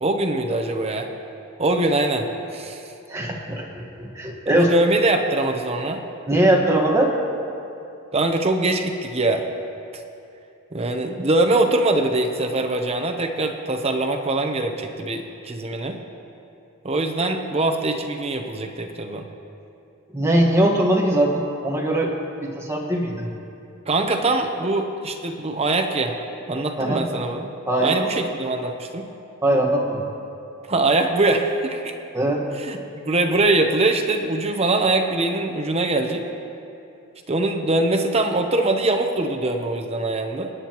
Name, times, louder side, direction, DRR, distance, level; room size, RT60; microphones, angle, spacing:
voice 1, 0.0-1.1 1.6-2.8 4.5-6.0 8.1-9.5 10.7-16.0 16.8-19.3 23.9-26.2 26.5-27.5 27.8-29.1 30.7-31.9 32.6-36.3 37.3-40.5, right 2 dB, 30° right, 3 dB, 0.8 m, -23 dB
voice 2, 3.1-4.7 6.3-7.1 20.1-22.1 22.4-23.3 26.8-27.0 27.7-27.9 29.4-30.1 32.1-32.4, right 1 dB, 15° right, -1 dB, 1.5 m, -21 dB
28.5 x 9.6 x 3.0 m, 2.7 s
head